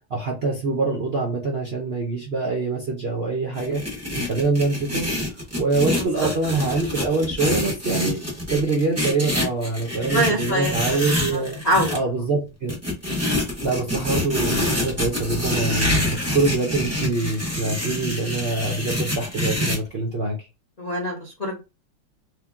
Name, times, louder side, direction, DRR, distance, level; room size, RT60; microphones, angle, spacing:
voice 1, 0.1-3.8 4.1-5.1 5.6-8.2 8.5-11.6 11.9-12.7 13.6-20.5, right 3 dB, 65° right, 0.6 m, -24 dB
sound 1, 3.5-12.0 12.7-19.8, left 1 dB, 10° right, 0.9 m, -26 dB
voice 2, 10.1-10.7 11.6-12.0 20.8-21.6, right 1 dB, 65° left, 0.4 m, -23 dB
3.3 x 2.8 x 3.5 m
omnidirectional pair, 2.2 m